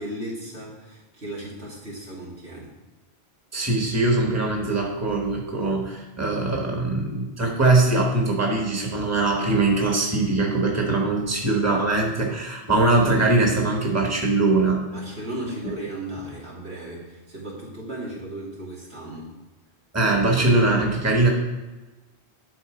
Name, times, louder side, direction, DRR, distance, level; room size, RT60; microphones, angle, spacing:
voice 1, 0.0-2.7 14.9-19.3, right 1 dB, 80° right, -5 dB, 2.6 m, -35 dB
voice 2, 3.5-14.8 19.9-21.3, right 2 dB, 15° right, 0 dB, 1.3 m, -21 dB
11.0 x 4.0 x 5.0 m, 1.2 s
omnidirectional pair, 1.1 m